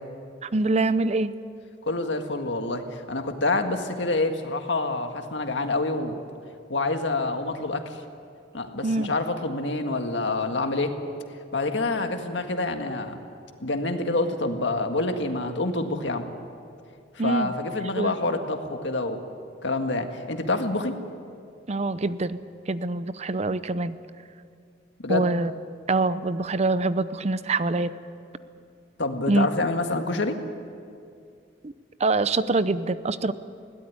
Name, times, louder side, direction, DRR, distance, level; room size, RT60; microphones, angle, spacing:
voice 1, 0.4-1.3 8.8-9.1 17.2-17.5 18.0-18.2 21.7-24.0 25.1-25.5 25.9-27.9 29.3-29.5 31.6-31.7 32.0-33.3, right 3 dB, 35° right, 14 dB, 0.6 m, -25 dB
voice 2, 1.9-6.2 6.7-8.0 8.5-10.9 11.5-13.2 13.6-16.3 17.2-19.2 19.6-20.9 25.0-25.3 29.0-30.4, left 2 dB, 75° left, 5 dB, 1.9 m, -27 dB
21.0 x 17.5 x 9.6 m, 2.3 s
head